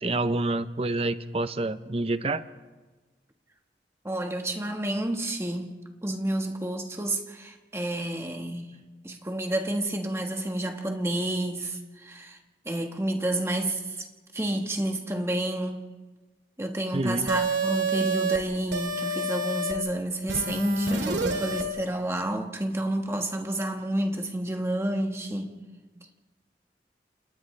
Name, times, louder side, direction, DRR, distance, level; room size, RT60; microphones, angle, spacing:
voice 1, 0.0-2.4 16.9-17.3, right 2 dB, 35° right, 0.7 m, -28 dB
voice 2, 4.0-5.7 6.0-8.7 9.0-12.4 12.6-14.1 14.3-15.8 16.6-25.5, right 1 dB, 15° right, 1.4 m, -30 dB
sound 1, 17.3-18.4 18.7-19.7 20.3-21.6, right 2 dB, 90° right, 2.5 m, -28 dB
29.0 x 28.5 x 3.3 m
head